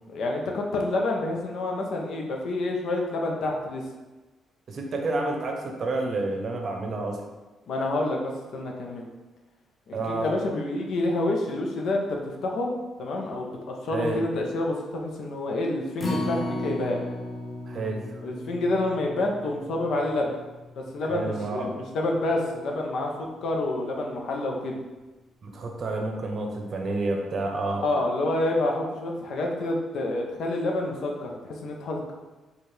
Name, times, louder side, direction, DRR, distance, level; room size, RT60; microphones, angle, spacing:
voice 1, 0.1-3.8 7.7-9.1 9.9-12.7 13.0-17.0 18.2-20.4 20.8-24.8 27.8-32.1, left 2 dB, 70° left, 0 dB, 0.6 m, -28 dB
voice 2, 4.7-7.2 9.9-10.3 13.9-14.2 17.7-18.2 21.0-21.7 25.4-27.8, right 2 dB, 50° right, 2 dB, 0.7 m, -29 dB
Acoustic guitar, 16.0-22.3 22.7-22.8 23.2-23.3, left 1 dB, 25° left, 0.8 m, -36 dB
4.4 x 2.4 x 3.3 m, 1.2 s
cardioid pair, 90°, 0 cm